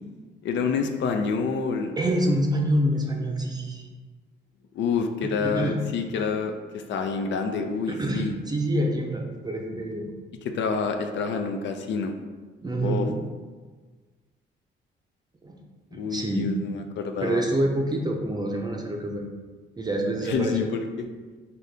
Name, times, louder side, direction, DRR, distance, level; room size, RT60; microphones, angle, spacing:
voice 1, 0.4-1.9 4.7-8.3 10.4-12.1 12.8-13.1 15.9-17.4 20.3-20.9, left 5 dB, 65° left, 5 dB, 0.4 m, -28 dB
voice 2, 2.0-3.9 5.2-5.8 7.9-10.1 12.6-13.2 15.4-15.6 15.9-16.5 17.2-19.2 19.8-20.6, right 1 dB, 20° right, 1 dB, 0.6 m, -26 dB
4.0 x 2.7 x 3.3 m, 1.4 s
cardioid pair, 90°, 20 cm